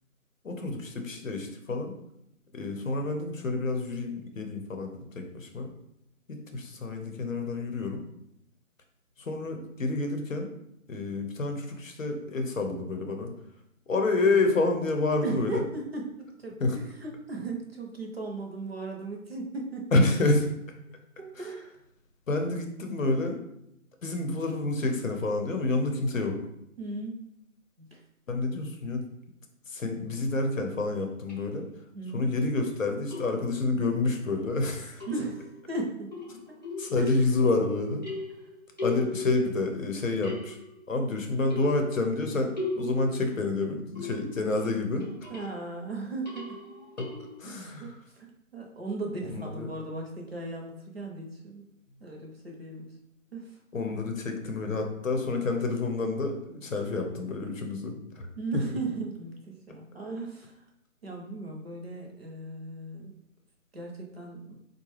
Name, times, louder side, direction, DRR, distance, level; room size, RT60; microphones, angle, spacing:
voice 1, 0.4-1.9 2.5-5.7 6.3-8.0 9.2-10.5 10.9-13.3 13.9-15.7 16.6-16.8 19.9-20.5 21.4-21.5 22.3-23.4 24.0-26.4 28.3-29.0 29.7-31.7 32.1-35.0 36.8-38.0 38.8-40.6 40.9-45.3 47.4-47.9 49.3-49.7 53.7-58.3, left 3 dB, 65° left, 4 dB, 0.7 m, -28 dB
voice 2, 15.2-19.9 21.2-21.7 26.8-27.3 27.8-28.0 31.9-32.3 35.1-36.1 36.5-36.6 37.0-37.2 45.3-46.6 47.5-51.6 52.0-52.9 53.3-53.6 58.4-60.6 61.0-63.1 63.7-64.6, right 2 dB, 45° right, 0 dB, 0.6 m, -37 dB
sound 1, 31.3-31.4 33.1-33.7 35.0-35.6 36.1-37.7 38.0-39.9 40.2-40.8 41.5-44.5 45.0-45.6 46.3-47.4, left 2 dB, 30° left, 0.6 m, -37 dB
4.0 x 2.1 x 3.1 m, 0.79 s
figure-of-eight pair, 170°, 42 cm